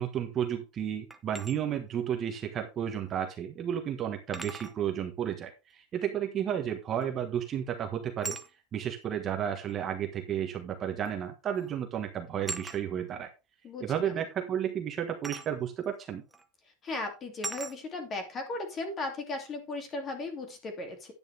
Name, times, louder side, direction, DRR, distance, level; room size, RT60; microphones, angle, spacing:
voice 1, 0.0-8.4 8.7-13.3 13.8-16.2, right 9 dB, 25° right, 4 dB, 1.4 m, -32 dB
sound 1, 1.1-1.6 3.1-3.2 4.3-4.8 7.0-7.3 8.2-8.5 9.7-9.8 11.0-11.3 11.5-11.8 12.4-12.8 15.2-15.5 16.3-16.4 17.4-17.8, right 3 dB, 5° right, 0.9 m, -39 dB
voice 2, 13.6-14.2 16.8-21.1, left 2 dB, 25° left, 5 dB, 2.7 m, -37 dB
10.5 x 9.1 x 3.5 m, 0.27 s
supercardioid pair, 165°, 0 cm